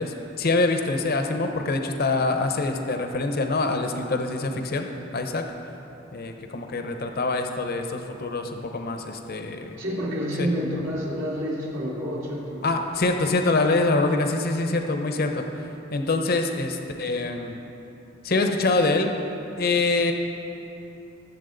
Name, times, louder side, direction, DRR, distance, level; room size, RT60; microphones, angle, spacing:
voice 1, 0.0-4.9 5.1-5.4 6.1-9.8 10.4-10.5 12.6-15.4 15.9-17.6 18.2-19.1 19.6-20.1, left 3 dB, 50° left, 5 dB, 0.8 m, -25 dB
voice 2, 9.8-12.7 13.8-13.9, equal, 75° right, -5 dB, 2.8 m, -29 dB
20.0 x 7.4 x 3.9 m, 3.0 s
head